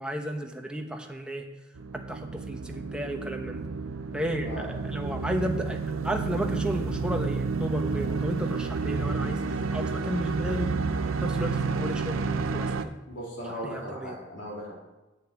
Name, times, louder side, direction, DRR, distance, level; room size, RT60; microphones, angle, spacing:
voice 1, 0.0-1.4 2.1-3.7 4.1-10.7 11.2-12.7 13.6-14.1, equal, 5° right, 2 dB, 1.0 m, -33 dB
sound 1, 1.8-12.8, right 4 dB, 90° right, 0.7 m, -30 dB
voice 2, 4.4-4.7 13.1-14.7, equal, 65° left, -3 dB, 3.8 m, -37 dB
8.3 x 7.1 x 8.5 m, 1.1 s
head